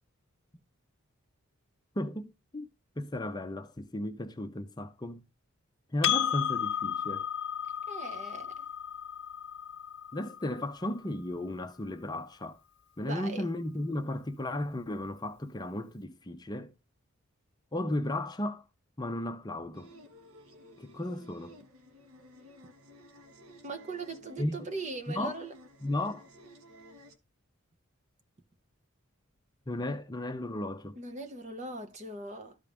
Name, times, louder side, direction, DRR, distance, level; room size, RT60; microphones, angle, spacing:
voice 1, 2.0-2.7 3.0-5.2 5.9-7.3 10.1-12.6 13.0-16.7 17.7-18.6 19.0-19.9 20.8-21.6 24.4-24.7 25.1-25.4 25.8-26.3 29.7-31.0, left 1 dB, 20° left, 0.7 m, -35 dB
Percussion, 6.0-10.8, left 9 dB, 55° left, 0.7 m, -33 dB
voice 2, 7.9-8.7 13.0-13.4 23.6-25.6 31.0-32.6, right 3 dB, 35° right, 0.9 m, -40 dB
sound 1, 19.7-27.2, equal, 85° right, 1.4 m, -54 dB
13.5 x 5.2 x 2.5 m
head